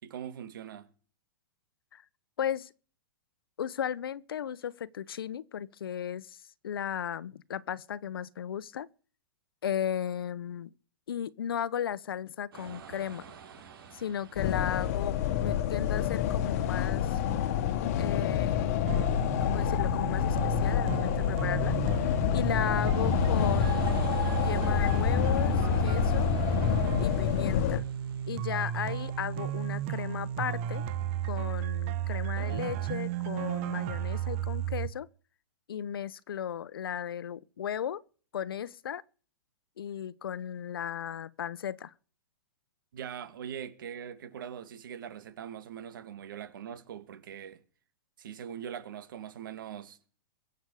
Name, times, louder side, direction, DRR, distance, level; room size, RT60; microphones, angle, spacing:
voice 1, 0.0-0.9 42.9-47.6 48.2-50.0, right 9 dB, 65° right, 2.5 m, -42 dB
voice 2, 2.4-2.7 3.6-8.9 9.6-10.7 11.1-13.2 13.9-17.2 18.0-19.1 19.4-23.9 24.4-26.3 27.0-27.8 28.3-30.8 31.2-35.1 35.7-38.0 38.3-39.0 39.8-41.9, left 9 dB, 90° left, 0.9 m, -35 dB
sound 1, 12.5-30.3, right 6 dB, 80° right, 4.6 m, -48 dB
sound 2, 14.3-27.8, left 10 dB, 40° left, 1.4 m, -28 dB
sound 3, 18.9-34.9, right 11 dB, 35° right, 1.1 m, -33 dB
23.0 x 8.1 x 4.9 m
hypercardioid pair, 165°, 12 cm